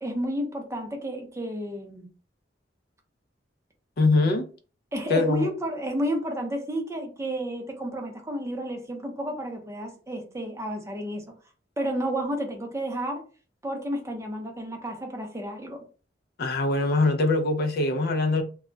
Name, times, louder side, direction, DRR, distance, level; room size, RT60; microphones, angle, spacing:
voice 1, 0.0-2.1 4.9-11.2 11.8-13.2 13.6-15.8, equal, 15° right, 0.6 m, -31 dB
voice 2, 4.0-4.5 5.1-5.5 16.4-18.4, left 2 dB, 60° left, 0.5 m, -23 dB
2.2 x 2.1 x 3.7 m
head